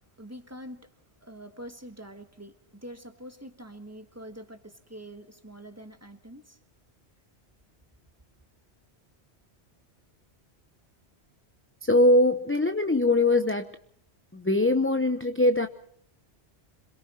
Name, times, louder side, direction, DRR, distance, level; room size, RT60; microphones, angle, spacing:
voice 1, 0.2-0.9 1.2-6.6, equal, 15° right, 7 dB, 1.4 m, -45 dB
voice 2, 11.8-13.7 14.3-15.7, left 2 dB, 15° left, 8 dB, 0.7 m, -22 dB
27.0 x 22.0 x 4.3 m, 0.62 s
omnidirectional pair, 1.1 m